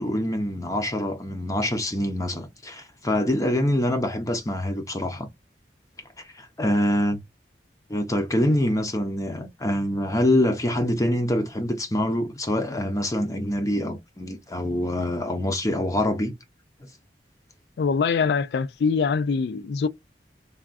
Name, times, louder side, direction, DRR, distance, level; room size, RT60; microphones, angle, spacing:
voice 1, 0.0-5.3 6.2-7.2 7.9-16.3, left 1 dB, 20° left, 0.6 m, -25 dB
voice 2, 17.8-19.9, left 5 dB, 65° left, 0.3 m, -23 dB
3.5 x 2.3 x 2.5 m
head